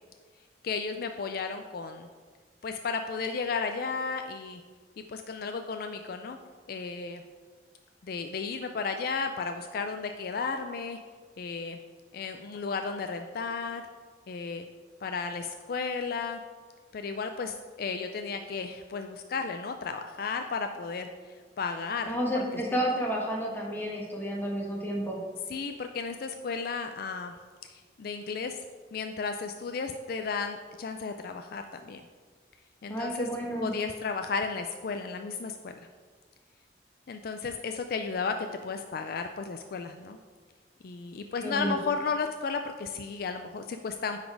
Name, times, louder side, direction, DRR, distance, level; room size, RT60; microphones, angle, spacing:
voice 1, 0.6-2.1 2.6-4.6 5.1-6.4 6.7-7.2 8.0-11.0 11.4-11.8 12.1-13.8 14.3-14.7 15.0-16.4 16.9-21.1 21.6-22.3 25.5-27.3 27.7-28.6 28.9-32.0 32.8-33.3 33.6-35.7 37.1-40.2 40.8-44.2, left 5 dB, 55° left, 6 dB, 0.4 m, -34 dB
voice 2, 22.1-25.2 32.9-33.7 41.4-41.8, equal, 10° left, -2 dB, 1.3 m, -31 dB
9.9 x 4.1 x 4.6 m, 1.5 s
head